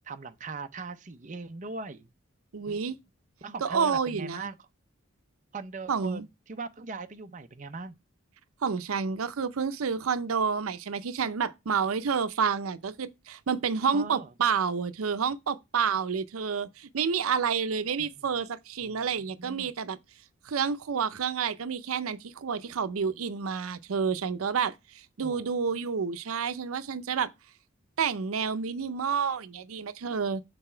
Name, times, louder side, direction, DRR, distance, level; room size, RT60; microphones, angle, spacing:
voice 1, 0.0-2.1 2.7-2.8 3.4-4.6 5.5-8.0 13.9-14.3 18.0-18.4 18.8-19.1 19.4-19.7 25.2-25.5, right 4 dB, 35° right, 0.5 m, -40 dB
voice 2, 2.5-3.0 3.6-4.5 5.9-6.2 8.6-20.0 20.4-27.3 28.0-30.4, right 6 dB, 90° right, 0.6 m, -29 dB
6.7 x 4.1 x 4.3 m
head